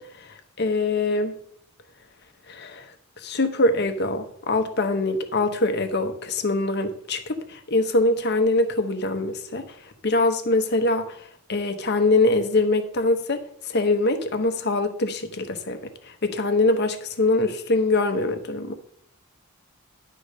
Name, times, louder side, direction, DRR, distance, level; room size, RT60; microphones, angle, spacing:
voice 1, 0.0-1.3 2.5-2.9 3.2-9.6 10.0-15.8 16.0-18.7, left 2 dB, 50° left, 8 dB, 0.9 m, -23 dB
11.0 x 3.9 x 6.4 m, 0.67 s
head